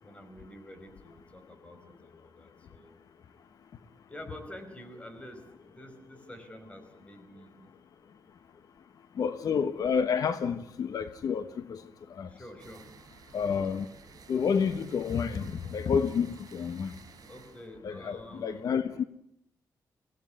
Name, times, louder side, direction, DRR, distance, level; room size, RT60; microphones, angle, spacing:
voice 1, 0.0-3.0 4.1-7.7 12.3-12.8 17.3-18.6, left 1 dB, 20° left, 4.7 m, -48 dB
voice 2, 9.2-11.8 12.1-12.3 13.3-13.9 14.3-16.9 17.8-19.0, left 6 dB, 70° left, 1.2 m, -29 dB
sound 1, 12.6-17.7, right 6 dB, 70° right, 4.9 m, -54 dB
24.0 x 17.0 x 9.6 m
cardioid pair, 105°, 7 cm